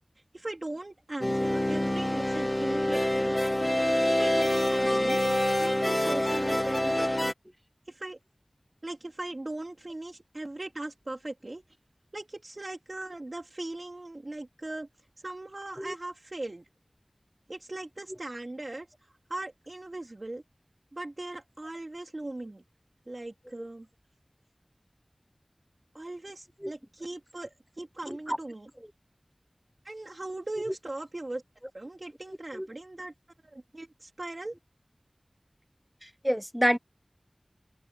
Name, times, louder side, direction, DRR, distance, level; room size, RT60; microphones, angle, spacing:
voice 1, 0.3-3.4 4.1-5.2 5.6-7.0 7.9-8.2 8.8-11.6 12.1-14.9 15.2-16.6 17.5-20.4 20.9-22.6 23.1-23.9 25.9-28.7 29.8-31.4 31.7-33.1 33.4-34.5, right 2 dB, 55° right, 3.2 m, -39 dB
sound 1, 1.2-7.3, left 1 dB, 25° left, 1.2 m, -26 dB
voice 2, 28.1-28.4 32.5-32.7 36.0-36.8, equal, 5° right, 0.8 m, -28 dB
wide cardioid pair, 50°, 0 cm